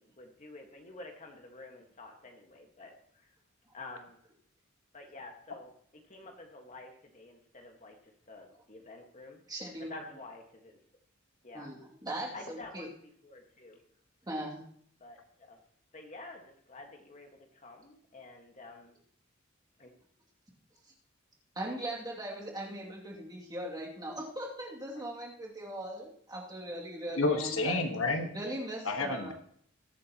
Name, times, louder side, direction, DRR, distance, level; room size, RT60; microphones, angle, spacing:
voice 1, 0.0-3.3 3.7-4.2 4.9-7.9 8.3-9.4 9.8-10.8 11.4-11.7 12.3-13.8 15.0-15.6 15.9-18.9 19.8-19.9, left 2 dB, 35° left, 3 dB, 1.6 m, -49 dB
voice 2, 9.5-9.9 11.5-12.9 14.3-14.6 21.6-27.9 28.3-29.3, right 1 dB, 20° right, -3 dB, 2.5 m, -39 dB
voice 3, 27.2-28.3 28.8-29.3, left 3 dB, 70° left, 5 dB, 1.4 m, -30 dB
21.0 x 8.4 x 3.0 m, 0.63 s
head